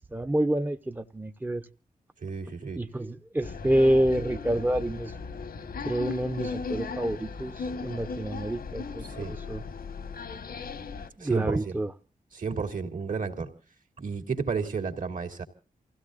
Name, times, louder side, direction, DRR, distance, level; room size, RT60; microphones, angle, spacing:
voice 1, 0.1-1.7 2.8-5.1 5.8-9.6 11.2-11.9, right 1 dB, 10° right, 0.7 m, -28 dB
voice 2, 2.2-2.8 9.0-9.3 11.2-11.8 12.3-13.5 14.0-15.4, right 5 dB, 65° right, 3.1 m, -32 dB
sound 1, 3.4-11.1, left 5 dB, 85° left, 1.5 m, -37 dB
29.5 x 16.5 x 2.5 m
wide cardioid pair, 135°, 15 cm